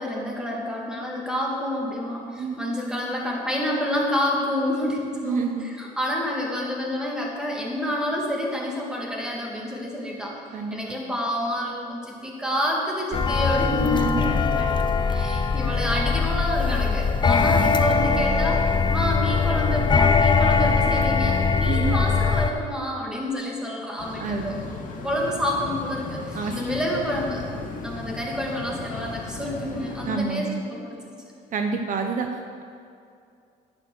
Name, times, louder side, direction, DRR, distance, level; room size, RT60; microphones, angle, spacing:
voice 1, 0.0-10.4 10.7-24.6 25.0-27.4 27.8-31.1, left 1 dB, 5° right, -2 dB, 2.4 m, -28 dB
voice 2, 2.4-2.8 5.2-5.7 10.5-10.8 13.8-14.3 17.4-17.7 21.7-22.1 24.2-24.6 26.3-26.6 30.1-30.6 31.5-32.6, right 5 dB, 50° right, 5 dB, 0.8 m, -29 dB
sound 1, 13.1-22.5, left 5 dB, 25° left, 0.7 m, -21 dB
sound 2, 24.0-30.2, left 4 dB, 50° left, 1.7 m, -36 dB
11.0 x 8.8 x 6.4 m, 2.4 s
cardioid pair, 110°, 17 cm